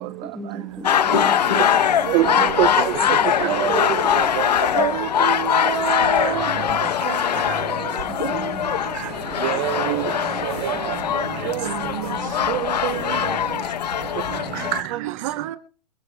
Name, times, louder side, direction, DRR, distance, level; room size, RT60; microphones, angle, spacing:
voice 1, 0.0-1.3 2.4-2.6 3.2-4.2 4.7-4.9 8.3-8.7 10.8-10.9 11.2-11.4, equal, ahead, 1.3 m, -38 dB
sound 1, 0.7-14.3, right 9 dB, 65° right, 3.2 m, -38 dB
sound 2, 0.8-14.8, left 9 dB, 80° left, 0.9 m, -22 dB
voice 2, 1.1-1.8 2.0-3.2 3.7-3.8 4.7-9.6 11.3-13.7 14.9-15.6, right 12 dB, 50° right, 1.4 m, -31 dB
voice 3, 2.1-3.7 4.1-4.5 9.4-10.1 10.4-11.2 14.5-15.1, right 16 dB, 30° right, 0.6 m, -25 dB
27.0 x 15.5 x 2.3 m
hypercardioid pair, 140°, 21 cm